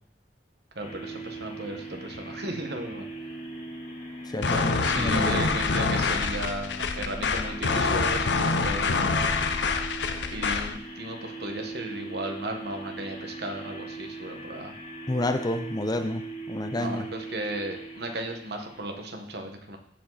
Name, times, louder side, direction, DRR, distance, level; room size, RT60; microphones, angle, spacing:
voice 1, 0.7-3.1 4.5-9.3 10.3-14.8 16.7-19.8, right 1 dB, 65° right, 4 dB, 1.6 m, -35 dB
sound 1, 0.8-19.1, right 2 dB, 45° left, 2.0 m, -40 dB
voice 2, 4.3-5.6 15.1-17.1, left 1 dB, 20° left, 9 dB, 0.6 m, -29 dB
sound 2, 4.4-10.8, left 4 dB, 80° left, 0.7 m, -26 dB
15.0 x 5.1 x 4.1 m, 0.65 s
head